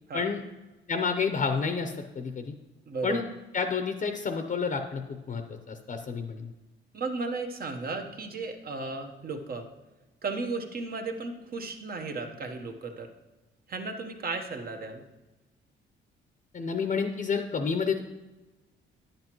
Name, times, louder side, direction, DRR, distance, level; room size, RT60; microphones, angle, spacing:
voice 1, 0.9-2.5 3.0-3.2 3.5-6.5 16.5-18.0, left 5 dB, 40° left, 6 dB, 0.7 m, -30 dB
voice 2, 2.9-3.2 6.9-9.7 10.2-13.1 13.7-15.0, right 3 dB, 50° right, 4 dB, 1.2 m, -34 dB
10.0 x 7.9 x 3.0 m, 1.1 s
cardioid pair, 90°, 20 cm